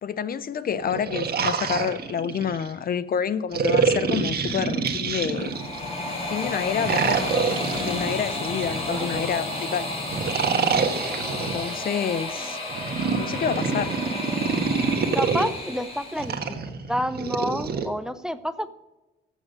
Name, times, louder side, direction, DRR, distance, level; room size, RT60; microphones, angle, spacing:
voice 1, 0.0-5.5 6.3-7.5 7.7-9.9 11.3-12.6 13.1-13.9, left 7 dB, 50° left, 0.5 m, -28 dB
sound 1, 0.8-2.7 3.5-5.9 6.8-9.3 10.1-11.7 12.7-15.5 16.2-17.9, right 5 dB, 50° right, 1.5 m, -26 dB
sound 2, 3.5-10.2, left 3 dB, 90° left, 1.8 m, -40 dB
sound 3, 5.2-16.3, left 2 dB, 30° left, 4.6 m, -32 dB
voice 2, 8.9-9.3 12.4-12.5 15.1-16.6 16.9-18.7, equal, 5° right, 0.6 m, -29 dB
13.5 x 7.4 x 6.6 m
cardioid pair, 90°, 20 cm